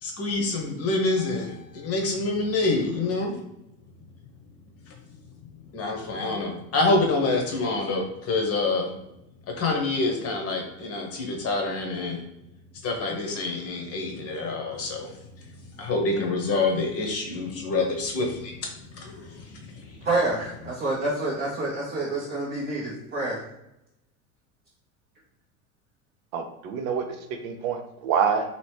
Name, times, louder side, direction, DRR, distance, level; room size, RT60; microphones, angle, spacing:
voice 1, 0.0-3.3 4.9-5.0 5.7-8.9 9.6-12.2 12.8-15.1 15.8-20.1, left 3 dB, 35° left, 1 dB, 0.9 m, -27 dB
voice 2, 20.0-23.4, right 2 dB, 20° right, -5 dB, 0.6 m, -27 dB
voice 3, 26.3-28.5, right 6 dB, 60° right, 5 dB, 0.7 m, -27 dB
2.9 x 2.8 x 3.2 m, 0.87 s
supercardioid pair, 105°, 44 cm